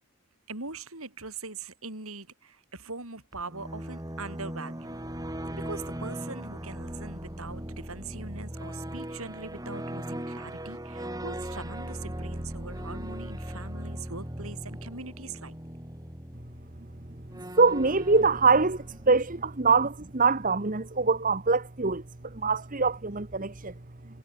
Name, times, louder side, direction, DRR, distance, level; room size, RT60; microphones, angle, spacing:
voice 1, 0.5-5.0 5.5-15.6, right 3 dB, 75° right, 7.7 m, -41 dB
sound 1, 3.3-20.0, right 1 dB, 15° right, 3.3 m, -39 dB
voice 2, 17.6-22.0 22.4-23.7, right 4 dB, 35° right, 1.3 m, -24 dB
head